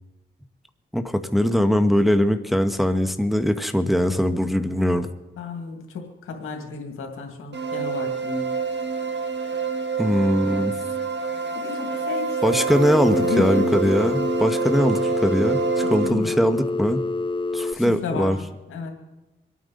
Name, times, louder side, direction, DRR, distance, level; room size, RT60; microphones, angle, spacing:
voice 1, 0.9-5.1 10.0-10.7 12.4-17.0 17.5-18.4, equal, ahead, 7 dB, 1.3 m, -21 dB
voice 2, 5.4-8.5 11.5-13.9 16.0-16.5 17.7-18.4 18.7-18.9, left 5 dB, 85° left, 3 dB, 2.3 m, -33 dB
sound 1, 7.5-16.1, right 5 dB, 60° right, 1.6 m, -27 dB
Telephone, 12.7-17.7, left 3 dB, 25° left, 0.5 m, -27 dB
26.0 x 9.3 x 4.0 m, 1.1 s
supercardioid pair, 45°, 21 cm